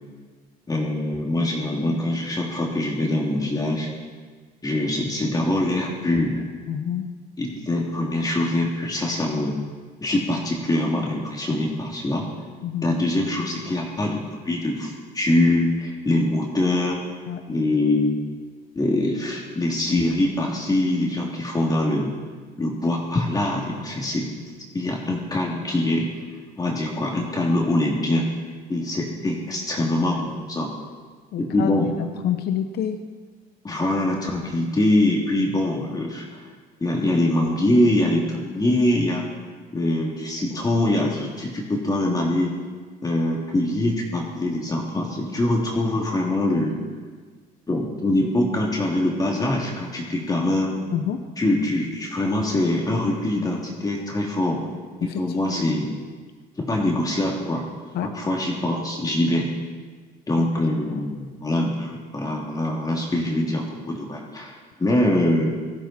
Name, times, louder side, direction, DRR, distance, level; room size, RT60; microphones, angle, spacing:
voice 1, 0.7-3.9 4.6-6.4 7.4-9.6 10.0-12.3 12.8-17.0 17.5-18.2 18.7-22.1 22.6-24.3 24.7-26.1 26.6-28.3 28.7-30.7 31.4-31.9 33.6-36.4 36.8-39.2 39.7-42.5 43.0-46.8 47.7-50.7 51.4-54.6 55.0-55.9 56.6-57.6 58.0-59.5 60.3-65.5, left 1 dB, 20° left, -2 dB, 3.0 m, -23 dB
voice 2, 6.7-7.0 12.6-13.0 17.3-17.4 31.3-33.0 50.9-51.2 55.0-55.2 55.5-55.6 57.9-58.1 60.3-60.4 60.9-61.0, left 9 dB, 70° left, 7 dB, 1.0 m, -28 dB
18.5 x 14.5 x 4.5 m, 1.5 s
cardioid pair, 110°, 17 cm